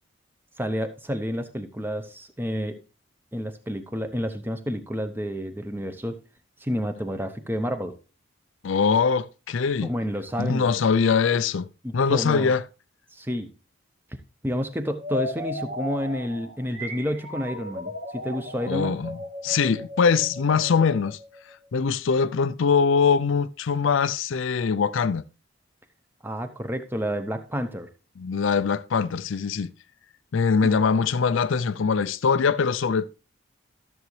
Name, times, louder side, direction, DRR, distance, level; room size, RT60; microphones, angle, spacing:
voice 1, 0.6-2.8 3.3-6.2 6.6-7.9 9.8-10.8 11.8-12.5 13.1-13.5 14.4-19.0 26.2-27.9 30.6-30.7, equal, 10° right, 0.8 m, -30 dB
voice 2, 8.6-9.9 10.4-11.7 11.9-12.6 18.7-19.2 19.4-21.2 21.7-25.2 28.2-29.7 30.3-33.0, left 5 dB, 65° left, 0.4 m, -22 dB
sound 1, 15.0-21.7, left 1 dB, 55° right, 2.0 m, -36 dB
13.0 x 7.1 x 3.2 m
head